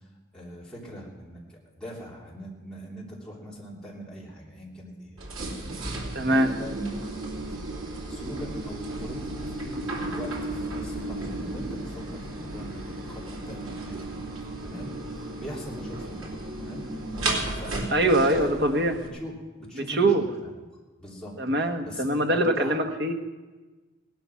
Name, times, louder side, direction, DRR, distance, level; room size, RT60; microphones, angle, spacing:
voice 1, 0.3-7.0 7.4-9.8 10.1-14.2 14.6-16.9 17.3-18.5 19.0-20.7 21.0-21.3 21.8-22.8, equal, 5° left, -6 dB, 3.3 m, -42 dB
sound 1, 5.2-19.1, right 2 dB, 85° right, 3.1 m, -34 dB
voice 2, 6.1-6.5 17.9-18.9 19.9-20.2 21.4-23.1, right 1 dB, 50° right, 4 dB, 1.4 m, -23 dB
17.5 x 12.0 x 5.9 m, 1.2 s
head